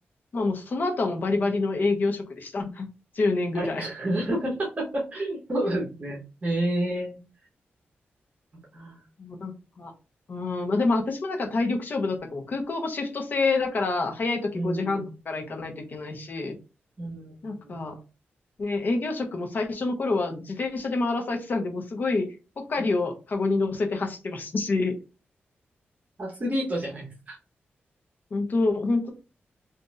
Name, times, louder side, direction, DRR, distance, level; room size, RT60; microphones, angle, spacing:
voice 1, 0.3-2.9 3.1-3.8 5.6-5.7 9.2-9.5 9.8-9.9 10.3-16.6 17.4-18.0 18.6-22.3 22.6-24.9 28.3-29.1, left 3 dB, 50° left, 3 dB, 0.8 m, -27 dB
voice 2, 3.5-7.2 8.7-9.0 14.5-15.1 17.0-17.3 17.6-17.9 22.7-22.8 26.2-27.4, right 1 dB, 40° right, -2 dB, 1.1 m, -30 dB
3.9 x 2.6 x 2.5 m, 0.31 s
wide cardioid pair, 120°, 4 cm